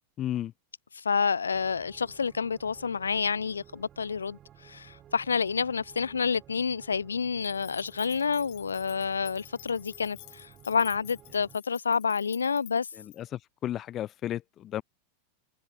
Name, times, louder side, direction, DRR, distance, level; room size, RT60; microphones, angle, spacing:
voice 1, 0.2-0.5 12.9-14.8, left 12 dB, 30° left, 3.3 m, -34 dB
voice 2, 0.9-12.9, left 6 dB, 75° left, 0.4 m, -29 dB
sound 1, 1.5-11.6, right 11 dB, 30° right, 7.2 m, -55 dB
sound 2, 7.4-13.2, left 34 dB, 45° left, 2.9 m, -51 dB
figure-of-eight pair, 90°, 0 cm